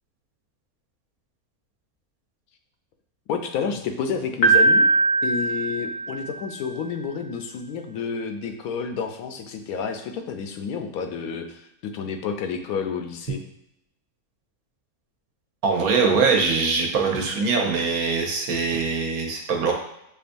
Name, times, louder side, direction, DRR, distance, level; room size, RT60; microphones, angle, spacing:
voice 1, 3.3-4.9 5.2-13.4, left 6 dB, 80° left, 5 dB, 1.0 m, -30 dB
Piano, 4.4-6.5, right 3 dB, 60° left, 0.7 m, -20 dB
voice 2, 15.6-19.7, right 4 dB, 75° right, 1 dB, 1.2 m, -22 dB
6.7 x 2.5 x 2.5 m, 0.82 s
omnidirectional pair, 1.5 m